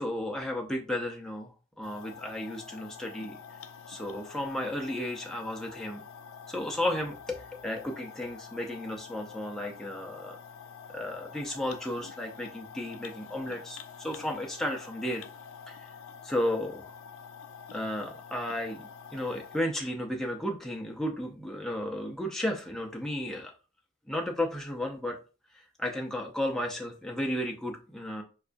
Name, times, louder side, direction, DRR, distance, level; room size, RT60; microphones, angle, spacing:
voice 1, 0.0-3.6 3.9-6.0 6.5-10.4 10.9-15.2 15.7-15.9 16.2-16.9 17.7-23.5 24.1-25.2 25.5-28.2, left 1 dB, 5° left, 0 dB, 0.4 m, -34 dB
sound 1, 1.8-19.6, left 6 dB, 75° left, 0.3 m, -47 dB
4.6 x 2.2 x 2.5 m, 0.34 s
head